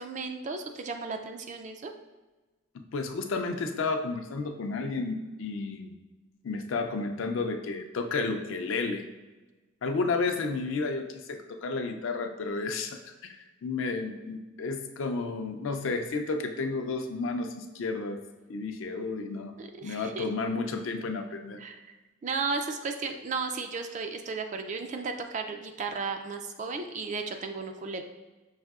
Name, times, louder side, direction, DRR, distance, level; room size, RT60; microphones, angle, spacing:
voice 1, 0.0-1.9 19.6-20.3 21.6-21.8 22.2-28.0, right 4 dB, 35° right, 6 dB, 0.3 m, -34 dB
voice 2, 2.9-5.9 6.4-9.0 9.8-13.3 13.6-18.2 18.5-19.5 19.8-21.6, left 3 dB, 70° left, 5 dB, 0.4 m, -32 dB
5.6 x 2.6 x 2.4 m, 1.2 s
head